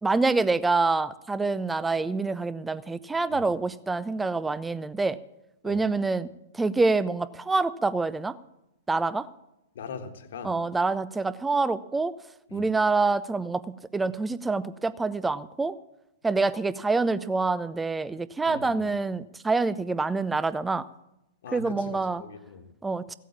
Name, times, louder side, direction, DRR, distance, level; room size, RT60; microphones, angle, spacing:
voice 1, 0.0-5.2 5.6-6.3 6.5-8.4 8.9-9.3 10.4-12.1 12.5-13.6 13.9-15.8 16.2-20.8 21.5-22.2 22.8-23.1, right 3 dB, 10° right, 16 dB, 0.5 m, -26 dB
voice 2, 9.7-10.5 12.5-12.7 18.5-18.9 21.4-22.7, left 5 dB, 60° left, 7 dB, 1.5 m, -41 dB
15.5 x 8.3 x 7.3 m, 0.90 s
figure-of-eight pair, 105°, 0 cm